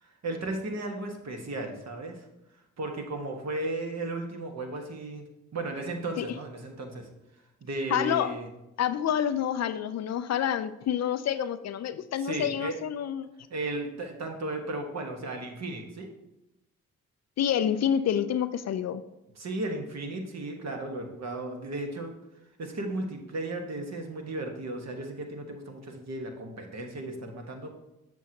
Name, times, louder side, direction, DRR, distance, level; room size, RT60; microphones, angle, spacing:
voice 1, 0.0-2.2 2.8-5.3 5.5-7.1 7.6-8.5 12.2-12.8 13.5-16.1 19.4-22.2 22.6-27.8, right 2 dB, 50° right, 3 dB, 1.3 m, -35 dB
voice 2, 7.9-8.3 8.8-13.3 17.4-19.0, left 9 dB, 50° left, 13 dB, 0.4 m, -28 dB
7.0 x 6.2 x 2.9 m, 0.92 s
supercardioid pair, 45°, 33 cm